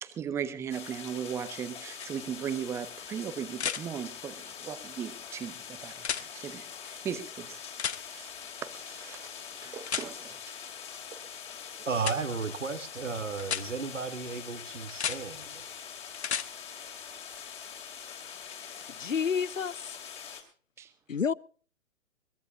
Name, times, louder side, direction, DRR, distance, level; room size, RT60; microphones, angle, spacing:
voice 1, 0.0-7.6 8.0-8.3 8.6-9.3 9.5-10.4 11.1-11.2 20.8-20.9, right 8 dB, 5° right, 0.7 m, -38 dB
sound 1, 0.7-20.4, left 7 dB, 15° left, 2.5 m, -44 dB
sound 2, 2.0-2.1 3.5-3.8 6.0-6.2 7.8-8.0 9.9-10.1 12.0-12.2 13.4-13.6 14.9-15.2 16.1-16.5 18.5-18.6, left 7 dB, 60° left, 1.2 m, -32 dB
voice 2, 11.9-15.6, right 5 dB, 75° right, 1.8 m, -34 dB
voice 3, 19.0-20.0 21.1-21.3, left 6 dB, 85° left, 0.6 m, -29 dB
22.0 x 19.0 x 2.5 m
figure-of-eight pair, 125°, 38 cm